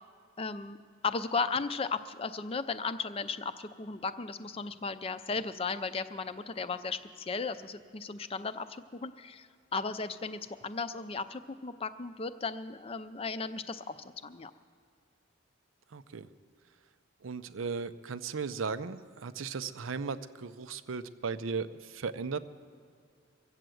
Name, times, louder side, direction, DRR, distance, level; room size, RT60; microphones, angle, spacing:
voice 1, 0.4-0.8 1.0-14.0 14.2-14.5, left 4 dB, 30° left, 12 dB, 0.4 m, -35 dB
voice 2, 15.9-16.3 17.2-22.4, right 5 dB, 90° right, 12 dB, 0.6 m, -36 dB
23.0 x 7.8 x 7.8 m, 2.3 s
head